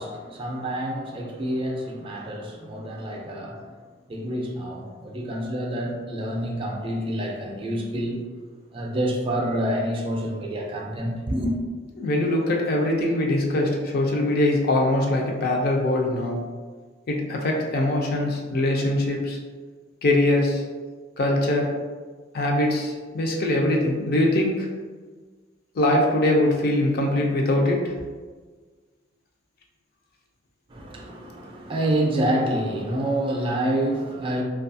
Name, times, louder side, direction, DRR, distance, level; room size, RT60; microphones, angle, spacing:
voice 1, 0.0-3.7 4.1-8.3 8.7-11.5 30.7-34.4, right 1 dB, 30° right, 0 dB, 0.4 m, -27 dB
voice 2, 12.0-16.4 17.1-19.4 20.0-20.6 21.2-21.7 22.3-24.7 25.7-27.9, left 1 dB, 55° left, 0 dB, 0.4 m, -22 dB
2.6 x 2.3 x 2.6 m, 1.4 s
head